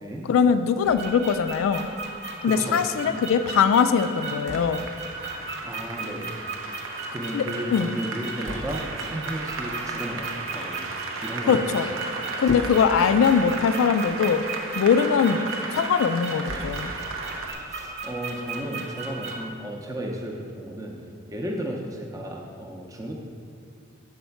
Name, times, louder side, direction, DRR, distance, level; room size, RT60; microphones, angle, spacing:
voice 1, 0.2-1.9 2.4-4.9 7.3-7.9 11.5-11.9 12.4-14.4 14.8-16.9, left 6 dB, 90° left, 10 dB, 0.3 m, -21 dB
sound 1, 0.8-19.5, right 3 dB, 60° right, 0.9 m, -36 dB
Applause, 2.2-17.5, right 3 dB, 85° right, 0.7 m, -36 dB
voice 2, 2.4-2.8 5.6-6.3 7.1-10.8 11.2-11.8 17.6-21.0 21.3-23.1, equal, 15° right, 0 dB, 0.6 m, -34 dB
7.8 x 4.2 x 5.7 m, 2.3 s
head